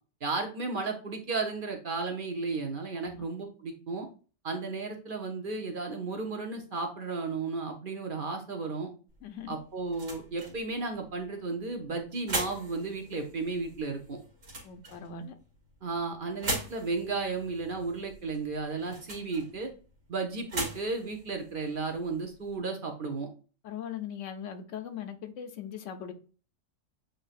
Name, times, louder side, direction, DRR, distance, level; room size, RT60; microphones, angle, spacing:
voice 1, 0.2-4.1 4.4-8.9 9.5-14.2 15.8-19.7 20.1-23.3, right 3 dB, 50° right, 0.8 m, -34 dB
sound 1, 9.1-22.6, right 2 dB, 80° right, 1.8 m, -41 dB
voice 2, 9.2-9.6 14.6-15.3 23.6-26.1, left 8 dB, 75° left, 0.9 m, -40 dB
7.5 x 2.7 x 2.4 m
omnidirectional pair, 1.3 m